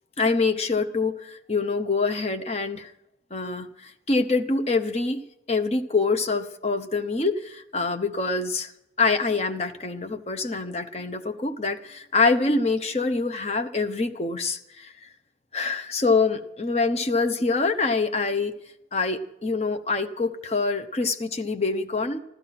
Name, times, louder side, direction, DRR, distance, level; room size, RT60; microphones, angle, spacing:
voice 1, 0.2-2.9 3.3-5.2 5.5-8.7 9.0-14.9 15.5-18.5 18.9-22.2, left 3 dB, 35° left, 8 dB, 0.8 m, -25 dB
14.5 x 13.0 x 5.8 m, 0.85 s
head